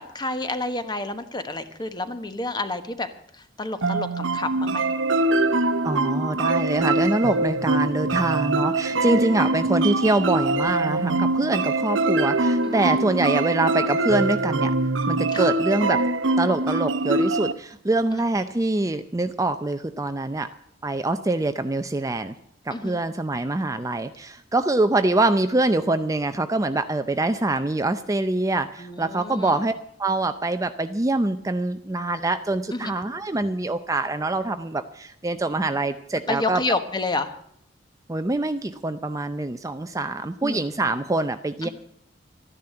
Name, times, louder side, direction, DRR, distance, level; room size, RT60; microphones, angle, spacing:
voice 1, 0.0-3.1 3.6-4.8 9.2-9.3 12.6-13.1 15.3-15.5 18.1-18.2 22.7-23.0 28.8-29.6 32.7-32.9 36.3-37.3 40.4-40.6 41.6-41.7, left 2 dB, 25° left, 9 dB, 1.2 m, -29 dB
sound 1, 3.8-17.5, right 2 dB, 85° right, 0.8 m, -23 dB
voice 2, 5.8-14.7 15.1-16.0 16.4-20.5 20.8-22.3 22.7-29.7 30.0-36.6 38.1-41.7, right 2 dB, 20° right, 9 dB, 0.5 m, -24 dB
13.0 x 10.5 x 7.7 m, 0.69 s
head